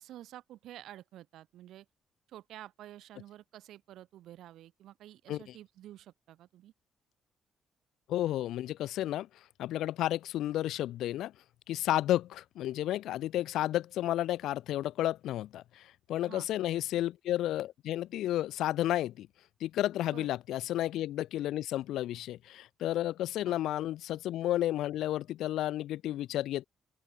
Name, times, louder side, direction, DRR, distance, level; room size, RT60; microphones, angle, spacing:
voice 1, 0.0-1.8 2.3-6.7 16.2-16.5 20.1-20.3 23.4-23.6, right 13 dB, 80° right, 5.1 m, -50 dB
voice 2, 8.1-9.3 9.6-11.3 11.7-15.8 16.1-19.3 19.6-26.6, left 13 dB, 85° left, 0.7 m, -32 dB
open air
cardioid pair, 90°, 0 cm